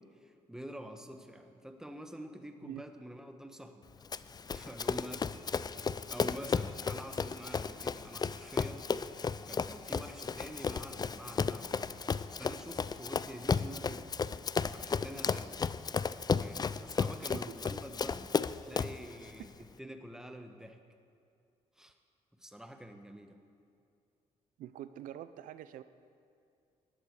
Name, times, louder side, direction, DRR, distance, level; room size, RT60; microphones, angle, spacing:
voice 1, 0.0-3.9 4.5-5.4 5.9-11.9 12.4-14.1 14.7-15.6 16.4-18.3 18.6-20.8 21.8-21.9 22.4-23.4, equal, 5° right, 6 dB, 1.3 m, -47 dB
Run, 4.1-19.0, left 5 dB, 30° left, 0.4 m, -34 dB
sound 1, 4.8-14.6, left 2 dB, 45° left, 3.0 m, -58 dB
voice 2, 17.2-17.6 19.4-19.5 24.6-25.8, right 12 dB, 75° right, 13 dB, 0.5 m, -45 dB
16.5 x 11.5 x 4.8 m, 2.4 s
supercardioid pair, 70°, 14 cm